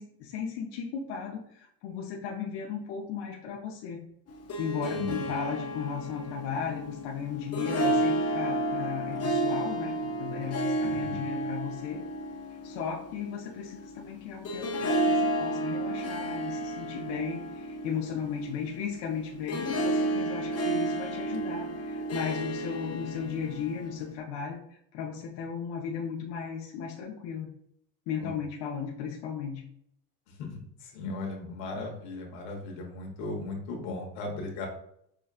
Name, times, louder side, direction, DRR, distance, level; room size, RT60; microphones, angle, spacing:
voice 1, 0.0-4.0 4.6-12.1 12.6-24.6 24.9-27.5 28.1-29.6, left 7 dB, 60° left, -1 dB, 0.9 m, -36 dB
Harp, 4.3-24.1, right 1 dB, 30° left, 0.7 m, -32 dB
voice 2, 10.8-11.2 28.2-28.4 30.4-34.7, left 3 dB, 85° left, 0 dB, 1.3 m, -37 dB
6.0 x 2.3 x 2.4 m, 0.68 s
supercardioid pair, 90°, 48 cm